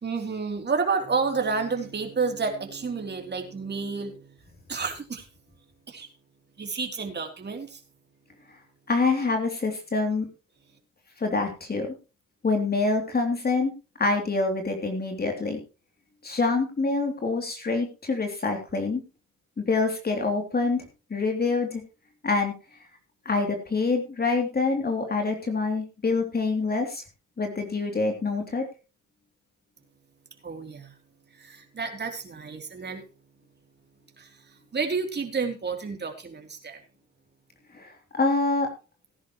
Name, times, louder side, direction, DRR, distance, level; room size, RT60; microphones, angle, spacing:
voice 1, 0.0-4.4 4.7-5.3 5.9-6.1 6.6-7.8 30.4-31.0 31.3-33.1 34.2-36.8, right 4 dB, 35° right, 3 dB, 3.4 m, -30 dB
voice 2, 8.9-10.3 11.2-11.9 12.4-13.7 14.0-15.6 16.2-19.0 19.6-20.8 21.1-21.8 22.2-22.5 23.2-27.0 27.4-28.7 37.7-38.7, left 3 dB, 30° left, 3 dB, 3.2 m, -26 dB
17.5 x 10.5 x 3.1 m, 0.32 s
cardioid pair, 90°, 30 cm